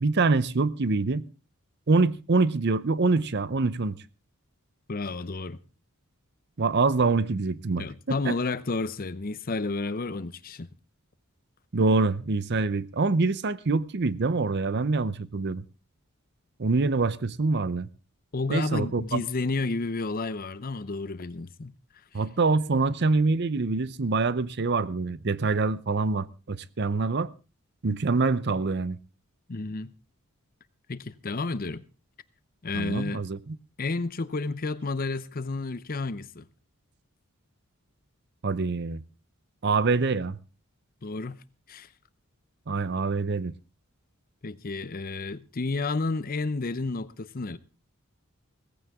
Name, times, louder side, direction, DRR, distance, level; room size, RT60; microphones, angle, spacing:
voice 1, 0.0-1.2 1.9-4.0 6.6-8.4 11.7-15.6 16.6-17.9 18.5-19.2 22.1-27.3 27.8-29.0 32.7-33.6 38.4-39.0 39.6-40.4 42.7-43.5, right 3 dB, 50° right, 0.7 m, -25 dB
voice 2, 4.9-5.6 7.8-10.7 18.3-21.7 29.5-29.9 30.9-31.8 32.6-33.3 33.8-36.4 41.0-41.4 41.7-41.9 44.4-47.6, left 3 dB, 40° left, 0.7 m, -31 dB
17.0 x 15.0 x 3.6 m
head